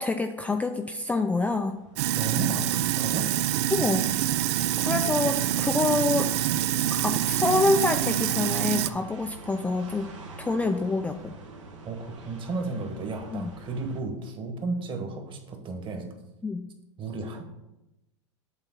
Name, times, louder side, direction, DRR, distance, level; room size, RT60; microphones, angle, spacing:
voice 1, 0.0-1.8 3.7-4.1 4.8-6.3 6.9-10.1 10.4-11.3 13.3-13.5 16.4-16.7, left 3 dB, 10° left, 5 dB, 0.3 m, -26 dB
sound 1, 0.9-14.0, right 3 dB, 80° right, 1.3 m, -47 dB
Sink (filling or washing), 2.0-8.9, right 12 dB, 65° right, 0.4 m, -26 dB
voice 2, 2.2-3.3 11.9-16.1 17.0-17.4, right 3 dB, 30° right, 5 dB, 1.4 m, -33 dB
7.9 x 3.7 x 6.0 m, 0.96 s
hypercardioid pair, 105°, 16 cm